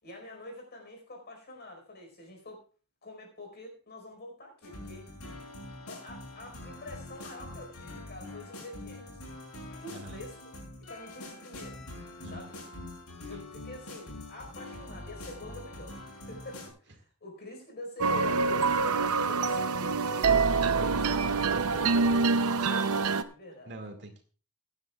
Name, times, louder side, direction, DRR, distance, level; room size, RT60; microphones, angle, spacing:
voice 1, 0.0-2.6 3.0-5.1 5.9-9.1 9.8-10.4 10.9-11.8 12.2-12.6 13.3-18.7 19.2-22.3 22.6-23.7, left 1 dB, 50° left, 3 dB, 4.8 m, -46 dB
sound 1, 4.6-16.7, left 1 dB, 80° left, 6.0 m, -44 dB
sound 2, 18.0-23.2, right 4 dB, 80° right, 0.7 m, -26 dB
voice 2, 23.7-24.2, right 2 dB, 55° right, 4 dB, 2.2 m, -45 dB
23.0 x 9.7 x 2.4 m, 0.36 s
head